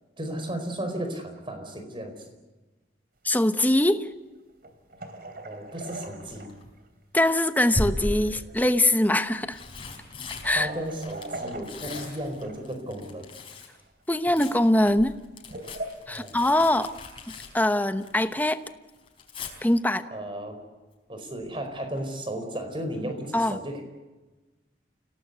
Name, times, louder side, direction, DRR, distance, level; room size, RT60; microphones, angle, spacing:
voice 1, 0.2-2.3 5.4-6.5 10.5-13.3 16.1-16.4 20.1-20.6 21.1-23.8, right 1 dB, 30° right, 6 dB, 4.7 m, -34 dB
voice 2, 3.2-4.1 7.1-9.6 10.4-10.7 14.1-15.2 16.1-16.9 17.5-18.6 19.6-20.0 23.3-23.6, left 1 dB, 10° left, 10 dB, 1.0 m, -22 dB
sound 1, 3.4-3.5 4.6-6.8 8.1-8.2 8.5-8.6 9.5-9.6 10.3-12.6 13.4-13.8 14.1-14.4 15.3-15.9, right 2 dB, 55° right, 3.2 m, -40 dB
Tearing, 6.2-6.7 7.7-8.5 9.2-13.8 14.0-18.3 18.6-19.5 21.4-21.7 22.0-22.1, left 1 dB, 30° left, 4.7 m, -37 dB
29.5 x 18.0 x 8.2 m, 1.2 s
head